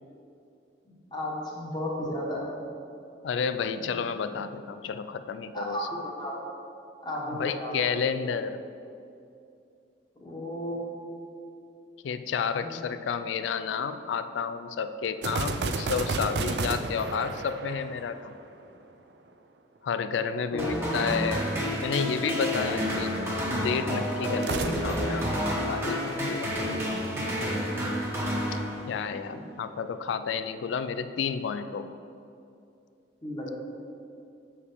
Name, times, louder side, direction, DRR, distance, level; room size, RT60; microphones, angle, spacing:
voice 1, 0.8-2.6 3.8-4.0 5.5-5.8 6.2-6.3 7.0-7.7 10.2-10.8 12.6-12.8 20.5-20.7 29.3-29.4 33.2-33.6, left 1 dB, 25° left, -4 dB, 1.2 m, -34 dB
voice 2, 3.2-5.8 7.4-8.6 12.0-18.4 19.8-21.4 21.8-23.2 23.5-27.5 28.5-28.6 28.9-31.9, left 6 dB, 85° left, 10 dB, 0.3 m, -31 dB
sound 1, 15.2-18.7 24.3-26.4, right 3 dB, 65° right, 0.4 m, -32 dB
sound 2, 20.6-29.2, equal, 15° right, 1.1 m, -29 dB
7.0 x 4.7 x 5.0 m, 2.5 s
head